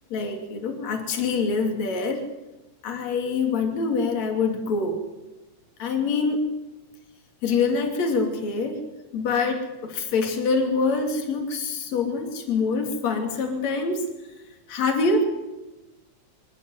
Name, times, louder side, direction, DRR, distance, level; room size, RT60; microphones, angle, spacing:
voice 1, 0.1-2.2 2.8-5.0 5.8-6.4 7.4-8.8 9.1-14.0 14.7-15.3, left 4 dB, 60° left, 2 dB, 4.0 m, -25 dB
23.5 x 13.5 x 9.4 m, 1.1 s
omnidirectional pair, 3.5 m